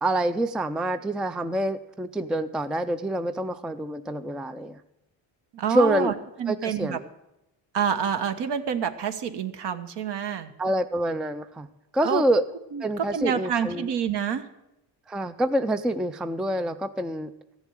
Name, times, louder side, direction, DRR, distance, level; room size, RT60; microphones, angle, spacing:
voice 1, 0.0-4.8 5.7-6.1 6.5-7.1 10.6-11.7 11.9-12.4 12.8-13.9 15.1-17.3, right 1 dB, ahead, 11 dB, 0.4 m, -26 dB
voice 2, 5.5-7.0 7.7-10.5 12.0-12.2 12.7-14.5, right 7 dB, 60° right, 9 dB, 1.2 m, -28 dB
14.0 x 7.2 x 8.9 m, 0.91 s
cardioid pair, 100°, 46 cm